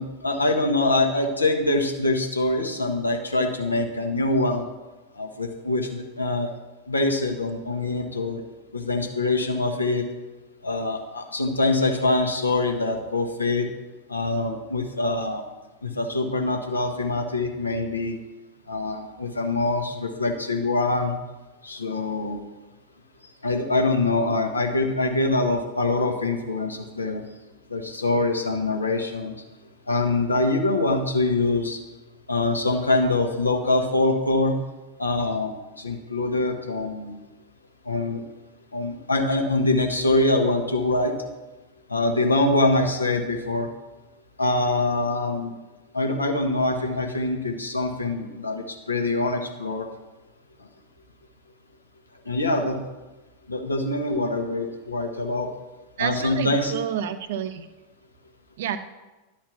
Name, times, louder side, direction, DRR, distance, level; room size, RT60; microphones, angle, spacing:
voice 1, 0.0-4.6 5.2-6.5 6.9-8.4 8.7-10.0 10.6-13.7 14.1-15.4 15.8-18.2 18.7-21.1 21.6-22.4 23.4-27.2 27.7-29.3 29.9-31.8 32.3-34.6 35.0-37.2 37.9-38.2 38.7-41.1 41.9-43.7 44.4-45.5 45.9-49.9 52.3-52.8 53.5-55.5 56.0-56.7, left 2 dB, 80° left, 3 dB, 1.0 m, -24 dB
voice 2, 56.0-57.7 58.6-58.8, right 9 dB, 55° right, 10 dB, 0.6 m, -29 dB
11.0 x 4.3 x 6.0 m, 1.1 s
figure-of-eight pair, 90°, 0 cm